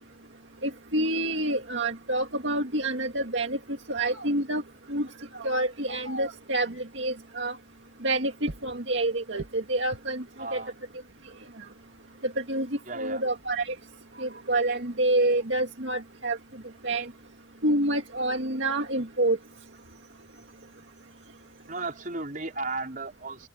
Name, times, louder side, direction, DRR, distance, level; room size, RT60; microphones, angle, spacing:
voice 1, 0.6-3.6 3.9-4.6 4.9-5.1 5.3-7.6 8.0-10.2 10.5-10.6 12.2-12.7 13.0-13.7 14.2-16.4 16.8-17.1 17.6-19.4, right 2 dB, 70° right, 2.0 m, -27 dB
voice 2, 10.4-10.8 12.9-13.2 21.7-23.5, right 3 dB, 40° right, 5.1 m, -35 dB
open air
head